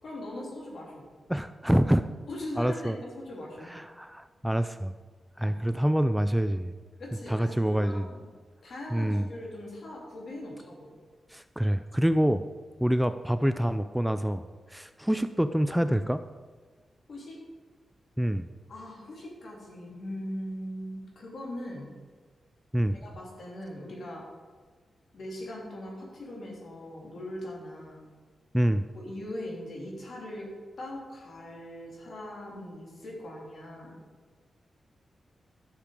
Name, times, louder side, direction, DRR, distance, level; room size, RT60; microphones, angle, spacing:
voice 1, 0.0-1.1 2.3-3.7 5.4-5.6 7.0-8.2 8.6-10.9 17.1-17.4 18.7-21.9 22.9-24.2 25.1-28.0 28.9-30.5 30.8-34.0, left 1 dB, 65° left, -2 dB, 3.2 m, -40 dB
voice 2, 1.3-2.0 2.6-3.0 3.7-4.9 5.4-6.7 7.3-8.1 8.9-9.3 11.3-12.4 12.8-16.2 18.2-18.5 22.7-23.0 28.5-28.8, equal, 5° right, 10 dB, 0.4 m, -26 dB
12.0 x 6.7 x 5.0 m, 1.4 s
cardioid pair, 85°, 0 cm